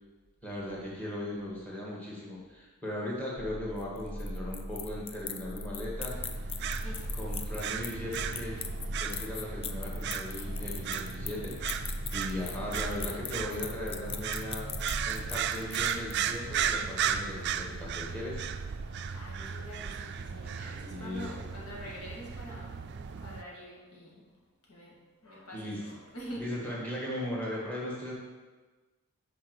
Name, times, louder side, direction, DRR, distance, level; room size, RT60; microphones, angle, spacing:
voice 1, 0.4-6.2 7.1-8.6 9.0-14.7 15.0-18.4 20.8-21.5 25.5-25.8 26.4-28.1, left 1 dB, 5° left, -5 dB, 1.8 m, -38 dB
sound 1, 3.4-15.8, equal, 15° right, 1.3 m, -41 dB
sound 2, 3.8-16.4, left 8 dB, 25° left, 0.3 m, -41 dB
sound 3, 6.1-23.4, right 7 dB, 50° right, 0.4 m, -36 dB
voice 2, 6.8-7.2 19.1-22.7 23.2-24.3 24.7-26.4, equal, 80° left, -4 dB, 2.2 m, -45 dB
6.3 x 5.0 x 6.4 m, 1.3 s
head